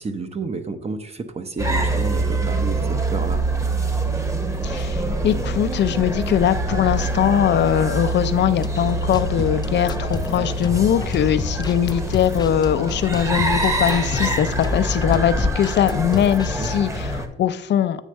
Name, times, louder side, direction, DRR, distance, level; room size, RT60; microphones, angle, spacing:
voice 1, 0.0-3.4 16.6-16.8, right 4 dB, 30° right, 8 dB, 0.8 m, -31 dB
sound 1, 1.6-17.3, right 1 dB, 15° right, 1.1 m, -25 dB
voice 2, 4.6-18.0, left 10 dB, 60° left, 13 dB, 0.6 m, -21 dB
sound 2, 8.6-16.9, left 4 dB, 20° left, 0.3 m, -31 dB
8.2 x 3.3 x 6.4 m, 0.86 s
cardioid pair, 90°, 20 cm